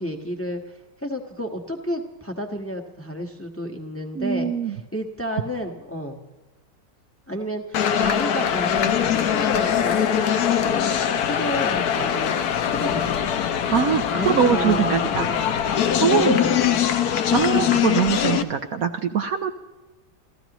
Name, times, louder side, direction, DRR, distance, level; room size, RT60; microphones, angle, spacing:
voice 1, 0.0-6.2 7.3-12.3 12.7-13.0 14.1-15.4 16.0-17.2 17.5-17.8, equal, 10° left, 2 dB, 1.2 m, -31 dB
voice 2, 4.2-4.8 13.7-15.3 16.0-16.4 17.3-19.6, right 7 dB, 60° right, 6 dB, 1.1 m, -22 dB
sound 1, 7.7-18.4, left 9 dB, 65° left, 1.3 m, -22 dB
29.0 x 14.5 x 3.0 m, 1.1 s
omnidirectional pair, 1.9 m